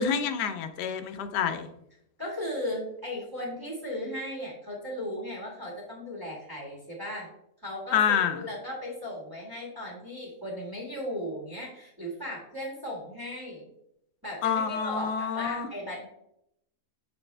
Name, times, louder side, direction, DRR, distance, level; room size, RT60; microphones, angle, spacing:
voice 1, 0.0-1.7 7.9-8.4 14.4-15.7, left 7 dB, 85° left, 10 dB, 1.3 m, -27 dB
voice 2, 2.2-7.3 7.6-13.7 14.2-16.1, left 1 dB, 15° right, -3 dB, 1.7 m, -36 dB
7.0 x 4.9 x 3.3 m, 0.78 s
omnidirectional pair, 1.7 m